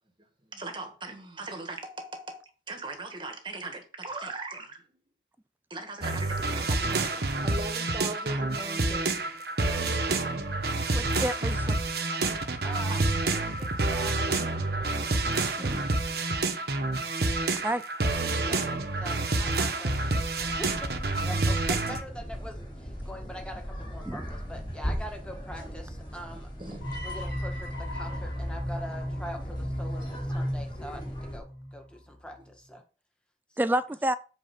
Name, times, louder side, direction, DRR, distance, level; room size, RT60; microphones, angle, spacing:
voice 1, 0.5-4.8 5.7-9.3 12.9-13.0 15.6-16.2 17.2-17.4 23.2-23.3 26.6-27.1, right 2 dB, 25° right, 1.4 m, -40 dB
sound 1, 6.0-22.0, right 2 dB, 55° right, 1.1 m, -28 dB
voice 2, 10.9-11.8 17.4-17.8 24.1-24.2 33.6-34.1, right 1 dB, 10° right, 0.3 m, -29 dB
voice 3, 12.6-15.4 18.4-18.6 19.0-22.6 23.0-26.5 27.0-32.8 33.7-33.8, equal, 5° left, 1.6 m, -43 dB
sound 2, 20.4-31.4, equal, 25° left, 3.5 m, -39 dB
sound 3, 26.8-31.9, equal, 60° left, 5.5 m, -35 dB
8.1 x 4.3 x 6.8 m
head